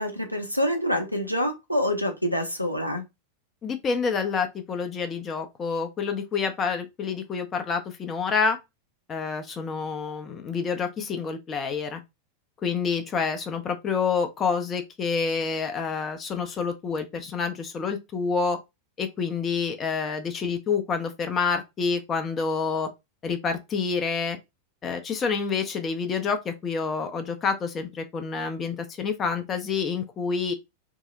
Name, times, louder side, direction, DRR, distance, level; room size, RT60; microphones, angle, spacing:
voice 1, 0.0-3.0, equal, 90° left, 0.5 m, -26 dB
voice 2, 3.6-8.6 9.1-12.0 12.6-18.6 19.0-22.9 23.2-24.4 24.8-30.5, left 5 dB, 25° left, 0.5 m, -28 dB
2.7 x 2.0 x 3.6 m
figure-of-eight pair, 90°, 0 cm